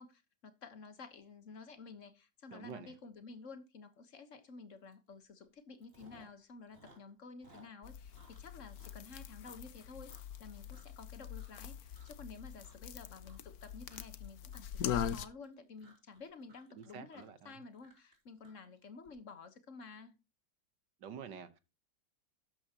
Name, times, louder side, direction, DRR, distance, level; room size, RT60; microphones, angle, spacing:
voice 1, 0.0-10.1 10.4-20.2, left 4 dB, 45° left, 1.5 m, -52 dB
voice 2, 2.5-2.9 16.7-17.6 21.0-21.6, right 7 dB, 65° right, 1.8 m, -48 dB
Chewing mastication, 4.9-5.1 5.4-6.4 6.7-11.0 11.3-11.7 11.9-12.3 12.6-19.1, right 2 dB, 30° right, 3.3 m, -63 dB
sound 1, 7.8-15.3, left 9 dB, 60° left, 1.1 m, -42 dB
12.5 x 9.0 x 2.9 m
omnidirectional pair, 2.1 m